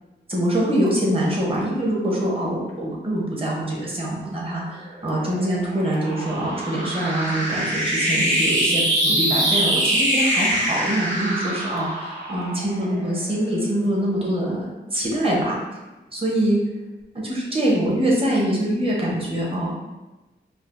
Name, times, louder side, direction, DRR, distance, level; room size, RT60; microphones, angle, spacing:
voice 1, 0.3-15.6 16.1-16.6 17.1-19.8, right 1 dB, 30° right, -4 dB, 0.8 m, -24 dB
sound 1, 4.9-13.6, right 1 dB, 90° right, 1.2 m, -24 dB
4.8 x 2.0 x 2.5 m, 1.1 s
wide cardioid pair, 140°, 20 cm